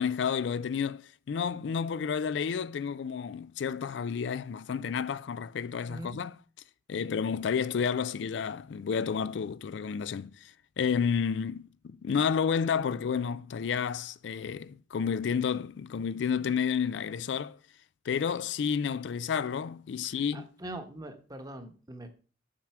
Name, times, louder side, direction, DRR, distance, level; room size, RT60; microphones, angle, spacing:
voice 1, 0.0-6.3 6.9-17.6 18.1-20.5, left 6 dB, 75° left, 0.4 m, -31 dB
voice 2, 5.8-6.2 20.0-22.1, right 1 dB, 20° right, 1.0 m, -43 dB
7.5 x 6.0 x 4.7 m
head